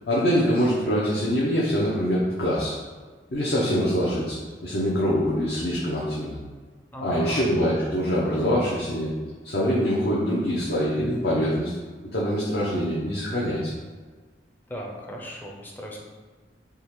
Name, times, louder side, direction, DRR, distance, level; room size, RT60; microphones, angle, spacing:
voice 1, 0.1-2.8 3.3-6.4 7.0-9.1 9.4-11.8 12.1-13.7, equal, 60° left, -6 dB, 0.6 m, -24 dB
voice 2, 6.9-7.4 14.7-16.0, equal, 10° left, -1 dB, 0.4 m, -37 dB
3.6 x 2.7 x 2.9 m, 1.4 s
head